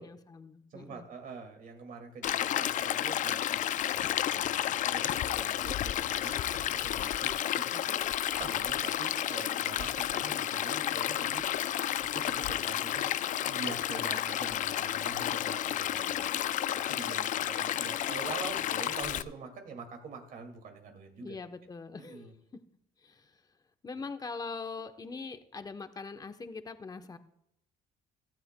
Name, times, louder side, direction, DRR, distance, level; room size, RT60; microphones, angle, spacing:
voice 1, 0.0-1.1 21.2-22.3 23.0-23.4 23.8-27.2, left 4 dB, 20° left, 9 dB, 0.8 m, -42 dB
voice 2, 0.7-8.0 8.4-11.5 12.0-13.1 13.4-16.3 16.7-21.4 22.0-22.3, right 4 dB, 55° right, 4 dB, 2.2 m, -45 dB
Stream, 2.2-19.2, left 11 dB, 50° left, 0.4 m, -31 dB
16.0 x 13.5 x 2.2 m, 0.81 s
cardioid pair, 110°, 17 cm